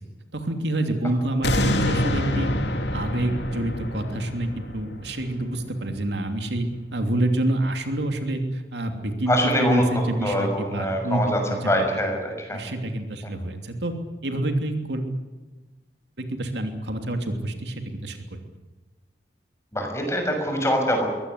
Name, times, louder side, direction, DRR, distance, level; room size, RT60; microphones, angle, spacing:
voice 1, 0.3-2.5 2.9-11.2 11.5-11.8 12.5-13.9 14.2-15.0 16.2-18.4, right 1 dB, 75° right, 5 dB, 3.0 m, -27 dB
sound 1, 1.4-6.5 7.0-7.1, left 1 dB, 70° left, 2.8 m, -27 dB
voice 2, 9.3-12.6 13.2-13.3 19.7-21.1, equal, 15° left, 3 dB, 6.4 m, -24 dB
23.0 x 18.0 x 9.8 m, 1.2 s
head